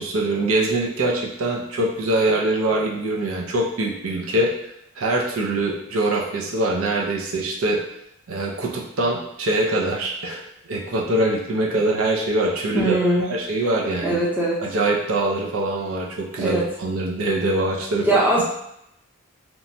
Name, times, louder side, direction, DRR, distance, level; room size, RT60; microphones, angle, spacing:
voice 1, 0.0-4.5 5.0-7.8 8.3-13.0 13.3-14.2 14.6-18.2, right 2 dB, 85° right, -2 dB, 0.5 m, -23 dB
voice 2, 12.7-13.3 14.0-14.6 16.4-16.6 18.0-18.4, right 1 dB, 10° right, -5 dB, 0.5 m, -20 dB
2.9 x 2.2 x 2.6 m, 0.79 s
head